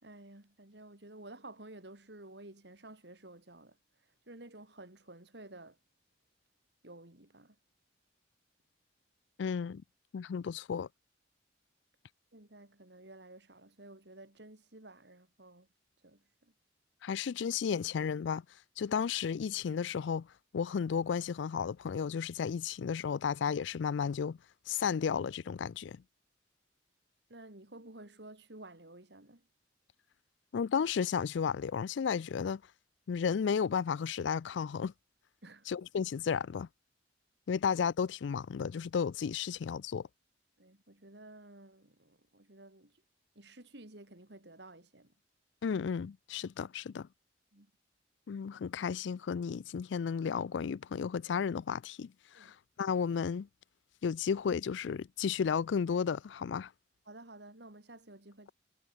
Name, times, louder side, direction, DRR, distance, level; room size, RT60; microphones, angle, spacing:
voice 1, 0.0-3.8 4.3-5.8 6.8-7.6 12.3-15.7 16.0-16.5 27.3-29.5 35.4-35.7 40.6-43.0 43.3-45.1 47.5-47.7 52.3-52.5 57.1-58.5, right 2 dB, 65° right, 2.9 m, -52 dB
voice 2, 9.4-9.8 10.1-10.9 17.0-18.4 18.8-20.3 20.5-24.4 24.7-26.0 30.5-32.6 33.1-34.9 35.7-36.7 37.5-40.1 45.6-47.1 48.3-52.1 52.4-53.5 54.0-56.7, left 6 dB, 75° left, 0.4 m, -33 dB
head